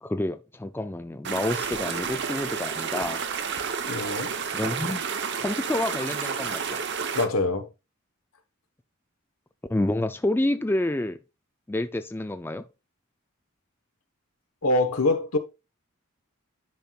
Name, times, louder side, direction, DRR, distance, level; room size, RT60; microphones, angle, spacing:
voice 1, 0.0-3.2 4.5-5.0 5.4-6.8 9.7-11.2 11.7-12.6, left 1 dB, 10° left, 0.4 m, -28 dB
sound 1, 1.2-7.3, right 6 dB, 55° right, 0.9 m, -30 dB
voice 2, 3.9-4.4 7.1-7.7 14.6-15.4, left 2 dB, 80° left, 1.3 m, -24 dB
10.5 x 5.8 x 2.4 m
head